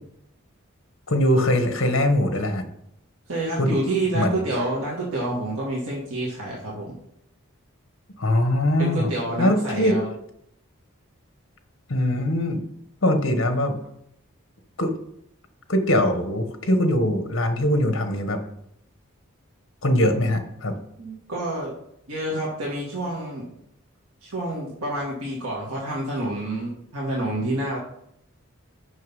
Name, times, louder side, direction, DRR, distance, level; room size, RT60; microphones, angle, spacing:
voice 1, 1.1-2.7 3.6-3.7 4.1-4.4 8.2-9.1 9.4-10.0 11.9-12.6 13.0-13.8 14.8-14.9 15.7-18.4 19.8-20.8, left 1 dB, 60° left, 7 dB, 1.1 m, -22 dB
voice 2, 3.3-7.0 8.8-10.0 21.0-21.7 22.1-23.5 24.2-27.8, right 1 dB, 90° right, -4 dB, 1.8 m, -28 dB
6.5 x 5.7 x 5.4 m, 0.75 s
head